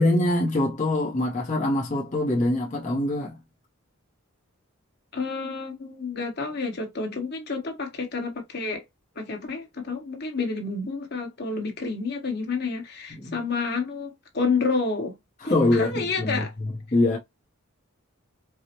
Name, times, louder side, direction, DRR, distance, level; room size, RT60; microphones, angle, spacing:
voice 1, 0.0-3.4 13.2-13.4 15.4-17.2, left 1 dB, 35° left, 0.8 m, -24 dB
voice 2, 5.1-8.8 9.1-15.1 15.7-16.5, left 4 dB, 50° left, 1.2 m, -29 dB
4.7 x 2.0 x 2.9 m
head